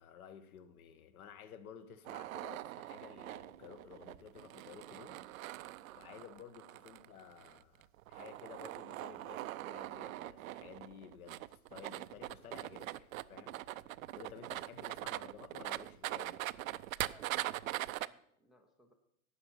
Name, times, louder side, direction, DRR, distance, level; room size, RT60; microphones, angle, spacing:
voice 1, 0.0-5.6 5.9-16.4, left 8 dB, 65° left, 1.5 m, -54 dB
sound 1, 2.0-18.1, right 16 dB, 60° right, 0.6 m, -42 dB
voice 2, 17.0-18.9, equal, ahead, 0.4 m, -65 dB
12.5 x 8.6 x 5.8 m
hypercardioid pair, 125°, 46 cm